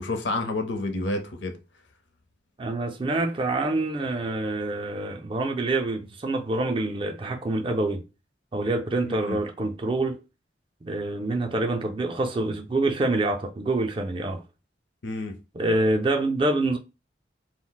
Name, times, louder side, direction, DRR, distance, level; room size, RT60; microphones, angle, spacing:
voice 1, 0.0-1.6 9.0-9.4 15.0-15.4, left 2 dB, 75° left, 0.6 m, -29 dB
voice 2, 2.6-8.0 8.5-10.2 10.8-14.4 15.5-16.8, right 2 dB, 30° right, 0.4 m, -26 dB
2.4 x 2.0 x 3.8 m
head